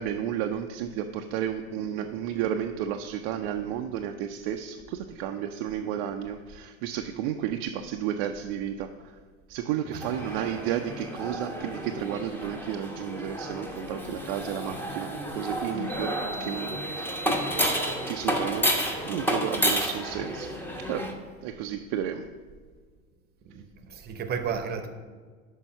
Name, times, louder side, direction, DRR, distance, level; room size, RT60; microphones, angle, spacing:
voice 1, 0.0-9.1 9.5-17.4 18.0-21.1 21.4-22.3, right 9 dB, 45° right, 4 dB, 0.5 m, -32 dB
voice 2, 9.9-10.3 23.4-23.6 23.9-24.9, right 6 dB, 25° right, 7 dB, 0.8 m, -33 dB
sound 1, 10.0-21.1, equal, 5° left, 0.9 m, -31 dB
6.4 x 5.2 x 5.5 m, 1.5 s
figure-of-eight pair, 85°, 40 cm